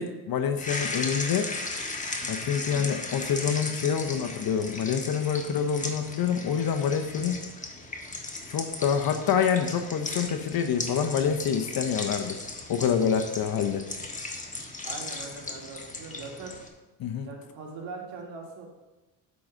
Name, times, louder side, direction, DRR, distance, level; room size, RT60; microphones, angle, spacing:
voice 1, 0.0-1.5 2.3-7.4 8.5-12.4 12.7-13.8 17.0-17.3, left 7 dB, 50° left, 6 dB, 0.8 m, -27 dB
sound 1, 0.6-16.7, left 2 dB, 15° left, 1.3 m, -36 dB
voice 2, 14.8-16.6 17.2-18.7, right 4 dB, 70° right, 1 dB, 2.1 m, -41 dB
8.5 x 4.0 x 6.2 m, 1.1 s
supercardioid pair, 70°, 46 cm